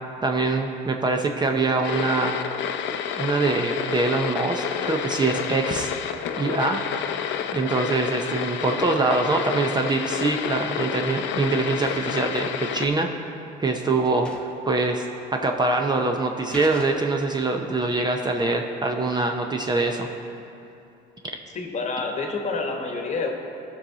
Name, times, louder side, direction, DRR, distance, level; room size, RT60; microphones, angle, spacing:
voice 1, 0.2-2.4 3.2-5.9 6.4-6.8 7.5-13.2 13.6-20.1, right 3 dB, 20° right, 3 dB, 0.6 m, -24 dB
sound 1, 1.8-12.9, left 8 dB, 70° left, 0.6 m, -29 dB
sound 2, 11.8-12.3 13.2-13.3 13.7-13.8 14.0-14.7 15.0-15.1 15.8-16.0 16.5-17.4, left 1 dB, 5° left, 1.1 m, -43 dB
voice 2, 21.5-23.3, left 3 dB, 35° left, 2 dB, 1.2 m, -28 dB
14.5 x 5.6 x 3.9 m, 2.8 s
cardioid pair, 105°, 20 cm